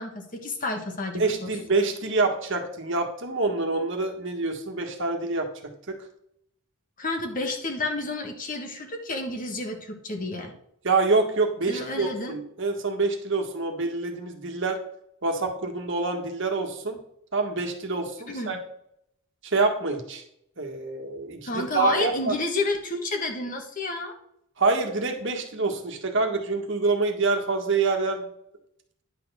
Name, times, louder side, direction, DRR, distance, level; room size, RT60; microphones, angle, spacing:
voice 1, 0.0-1.5 7.0-10.5 11.7-12.4 18.3-18.6 21.4-24.1, left 2 dB, 40° left, 3 dB, 1.4 m, -30 dB
voice 2, 1.2-5.5 5.9-6.0 10.8-14.8 15.2-17.0 17.3-18.6 19.4-20.2 20.6-22.3 24.6-28.3, right 3 dB, 55° right, 3 dB, 1.5 m, -26 dB
10.5 x 4.2 x 6.8 m, 0.72 s
head